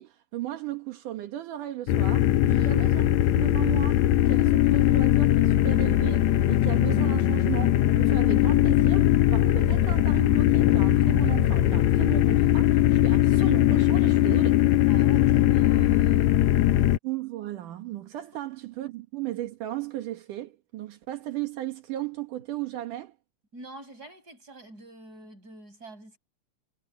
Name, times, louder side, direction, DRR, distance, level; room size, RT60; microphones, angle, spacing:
voice 1, 0.0-3.0 3.4-14.7 17.0-23.2, right 14 dB, 80° right, 3.0 m, -35 dB
sound 1, 1.9-17.0, left 13 dB, 70° left, 2.0 m, -21 dB
voice 2, 2.5-2.8 14.8-16.3 23.5-26.2, right 1 dB, 30° right, 6.9 m, -43 dB
omnidirectional pair, 3.6 m